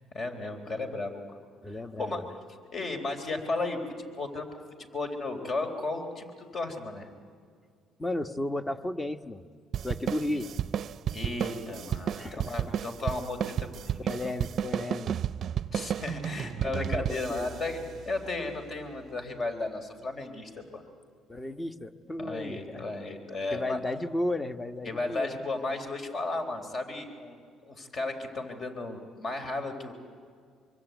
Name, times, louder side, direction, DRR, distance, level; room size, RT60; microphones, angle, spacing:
voice 1, 0.1-1.4 1.7-2.2 2.7-4.5 4.9-7.1 10.3-10.5 11.1-14.1 15.7-17.8 18.1-20.8 22.2-23.8 24.8-27.4 27.6-29.9, left 2 dB, 45° left, 6 dB, 3.9 m, -34 dB
voice 2, 1.6-2.2 8.0-9.4 9.8-10.5 12.2-12.7 14.0-15.1 16.6-17.5 21.3-22.8 23.5-25.3, left 1 dB, 15° left, 9 dB, 1.3 m, -34 dB
sound 1, 9.7-18.6, right 9 dB, 55° right, 0.6 m, -33 dB
25.0 x 24.0 x 9.3 m, 2.2 s
cardioid pair, 85°, 0 cm